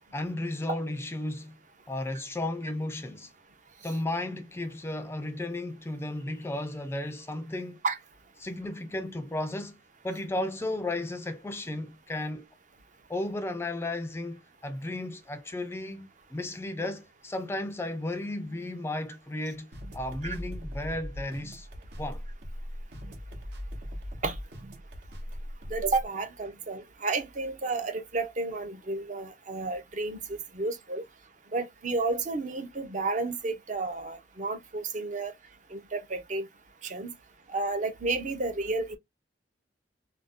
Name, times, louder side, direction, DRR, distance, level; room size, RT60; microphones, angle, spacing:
voice 1, 0.1-1.6 1.9-3.3 3.8-7.8 8.4-9.8 10.0-12.5 13.1-19.7 19.9-21.7 22.0-22.2, left 1 dB, 15° left, 0.3 m, -34 dB
sound 1, 19.7-26.0, equal, 75° right, 0.9 m, -39 dB
voice 2, 25.7-31.0 31.5-35.3 35.7-36.4 36.8-37.1 37.5-39.0, right 3 dB, 45° right, 0.6 m, -31 dB
2.5 x 2.2 x 3.4 m
head